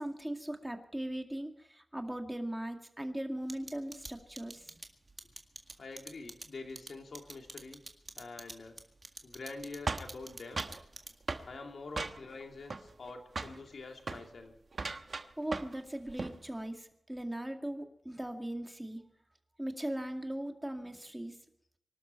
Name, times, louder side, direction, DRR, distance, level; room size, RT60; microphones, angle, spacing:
voice 1, 0.0-4.8 15.1-19.0 19.6-21.4, right 1 dB, 10° right, 4 dB, 2.1 m, -39 dB
sound 1, 3.5-11.4, right 3 dB, 45° right, 2.0 m, -47 dB
voice 2, 5.8-7.8 8.2-8.8 9.2-10.6 11.5-14.5, left 3 dB, 80° left, 3 dB, 2.5 m, -46 dB
sound 2, 9.9-10.8 11.3-11.5 12.0-12.4 12.7-13.1 13.4-13.6 14.0-14.2 14.7-15.8 16.1-16.4, right 3 dB, 60° right, 1.1 m, -37 dB
25.0 x 12.5 x 4.5 m, 0.74 s
wide cardioid pair, 85°, 0 cm